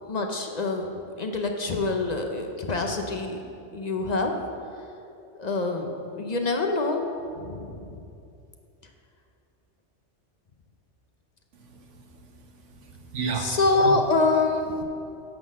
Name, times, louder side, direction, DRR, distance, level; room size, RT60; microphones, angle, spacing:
voice 1, 0.0-3.4 3.7-4.3 5.4-7.0 7.4-7.9 13.3-14.8, left 3 dB, 40° left, 4 dB, 0.7 m, -26 dB
voice 2, 11.7-12.3 12.7-14.0, right 5 dB, 80° right, 2 dB, 1.3 m, -33 dB
9.4 x 6.0 x 6.3 m, 2.6 s
omnidirectional pair, 1.2 m